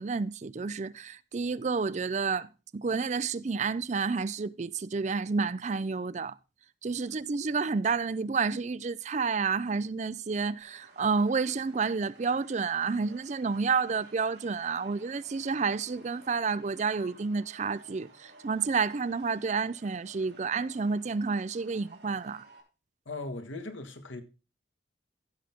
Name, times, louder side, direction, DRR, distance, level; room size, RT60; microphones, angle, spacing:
voice 1, 0.0-6.4 6.8-22.4, right 5 dB, 35° right, 0.4 m, -30 dB
sound 1, 10.6-22.6, right 2 dB, 55° right, 2.6 m, -56 dB
voice 2, 23.0-24.2, left 2 dB, 90° left, 1.6 m, -38 dB
15.0 x 5.9 x 3.5 m
head